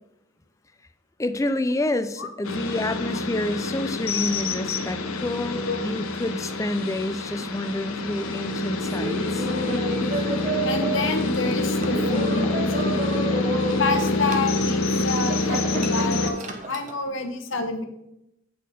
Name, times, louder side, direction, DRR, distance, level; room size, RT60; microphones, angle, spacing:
voice 1, 1.2-9.5, left 1 dB, 15° left, 10 dB, 0.4 m, -28 dB
sound 1, 2.4-16.3, left 2 dB, 90° left, 0.9 m, -26 dB
Laughter, 8.9-17.0, right 2 dB, 35° right, 0.9 m, -31 dB
voice 2, 10.6-13.0 13.8-17.8, left 3 dB, 65° left, 7 dB, 1.0 m, -28 dB
8.3 x 4.3 x 5.1 m, 0.82 s
head